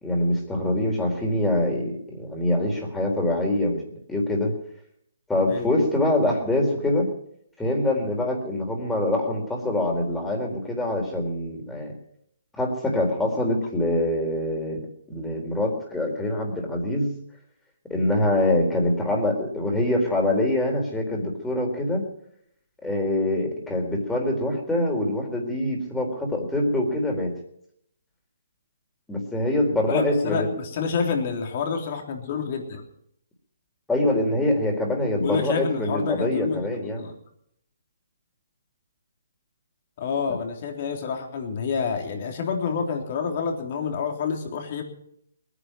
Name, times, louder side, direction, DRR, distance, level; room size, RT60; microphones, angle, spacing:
voice 1, 0.0-3.8 4.1-4.6 5.3-7.1 7.6-11.9 12.6-14.8 15.1-17.1 17.9-22.0 22.8-27.3 29.1-30.5 33.9-37.0, left 1 dB, 5° left, 1 dB, 3.9 m, -24 dB
voice 2, 29.9-32.8 35.2-36.6 37.0-37.1 40.0-44.8, left 5 dB, 45° left, 2 dB, 3.5 m, -28 dB
20.5 x 10.0 x 6.2 m, 0.71 s
hypercardioid pair, 145°, 0 cm